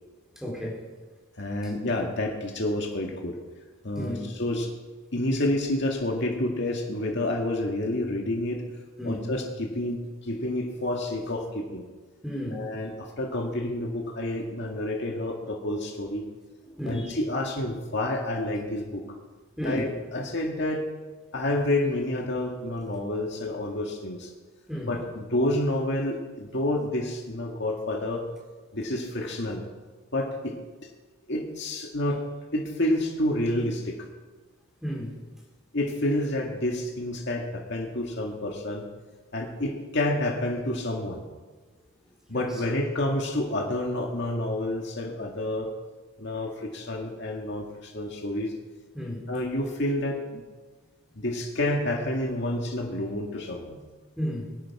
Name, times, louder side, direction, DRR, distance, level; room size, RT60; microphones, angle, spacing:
voice 1, 0.4-0.8 4.0-4.2 9.0-9.2 12.2-12.6 16.8-17.1 19.6-19.9 24.7-24.9 34.8-35.1 48.9-49.2 54.2-54.5, equal, ahead, -2 dB, 3.8 m, -32 dB
voice 2, 1.4-3.4 3.8-4.7 5.1-8.6 9.0-11.9 12.5-16.2 16.8-19.0 19.6-20.9 21.3-24.3 24.9-28.3 28.7-29.6 30.1-30.6 31.3-32.2 32.5-34.0 35.7-38.9 39.3-41.3 42.3-45.7 46.2-48.5 49.3-50.4 51.2-53.8, left 1 dB, 55° left, 1 dB, 2.0 m, -29 dB
22.5 x 11.5 x 4.9 m, 1.3 s
head